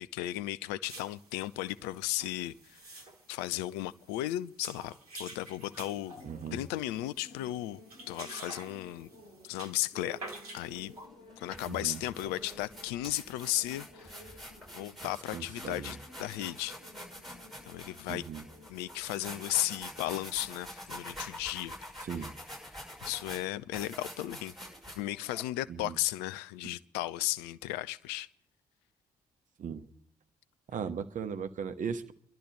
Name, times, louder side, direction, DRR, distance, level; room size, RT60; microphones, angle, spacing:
voice 1, 0.0-3.0 3.3-4.9 5.2-6.2 6.5-7.8 8.1-9.1 9.4-10.9 11.4-14.4 14.7-16.8 17.6-18.3 18.7-21.8 23.0-24.5 24.9-28.3, left 15 dB, 65° left, 0.5 m, -35 dB
sound 1, 0.9-11.1, right 2 dB, 85° right, 1.1 m, -49 dB
sound 2, 4.7-23.1, left 1 dB, 50° left, 5.6 m, -56 dB
voice 2, 6.2-6.6 11.7-12.0 15.3-15.9 18.1-18.4 22.0-22.3 25.7-26.0 29.6-29.9 30.7-32.1, right 7 dB, 45° right, 0.9 m, -37 dB
sound 3, 10.6-10.8 11.3-25.4, equal, ahead, 6.6 m, -46 dB
29.5 x 12.0 x 3.2 m
figure-of-eight pair, 40°, 18 cm